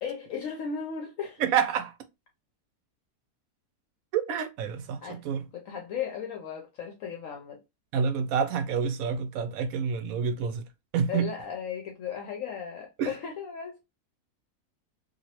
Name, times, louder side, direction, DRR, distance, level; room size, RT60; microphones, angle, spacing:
voice 1, 0.0-1.4 5.0-5.2 5.5-7.6 11.1-13.8, left 7 dB, 70° left, 1.0 m, -36 dB
voice 2, 1.4-1.9 4.1-5.4 7.9-10.7 10.9-11.3 13.0-13.1, right 7 dB, 70° right, 1.0 m, -28 dB
3.0 x 2.6 x 2.8 m
omnidirectional pair, 1.6 m